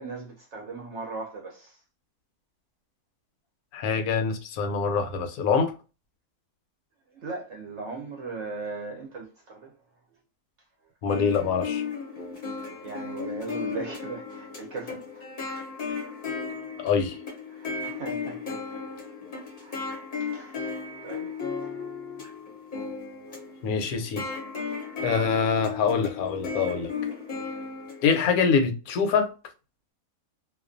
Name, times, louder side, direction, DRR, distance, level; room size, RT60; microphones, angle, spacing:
voice 1, 0.0-1.8 7.1-9.7 12.8-15.3 17.5-18.8 19.6-21.3 21.6-21.7, right 4 dB, 65° right, 0.8 m, -38 dB
voice 2, 3.7-5.7 11.0-11.8 16.8-17.2 23.6-24.3 25.0-26.9 28.0-29.3, left 5 dB, 75° left, 1.0 m, -25 dB
sound 1, 11.1-28.4, left 5 dB, 45° left, 0.7 m, -35 dB
2.4 x 2.2 x 2.5 m
omnidirectional pair, 1.6 m